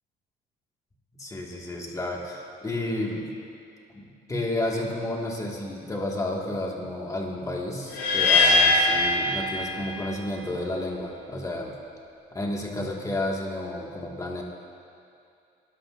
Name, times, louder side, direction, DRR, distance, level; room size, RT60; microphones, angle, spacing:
voice 1, 1.2-3.3 4.0-11.7 12.3-14.4, left 1 dB, 20° left, -1 dB, 1.7 m, -31 dB
sound 1, 7.9-10.1, left 3 dB, 85° left, 2.4 m, -21 dB
20.0 x 11.5 x 2.5 m, 2.5 s
cardioid pair, 110°, 17 cm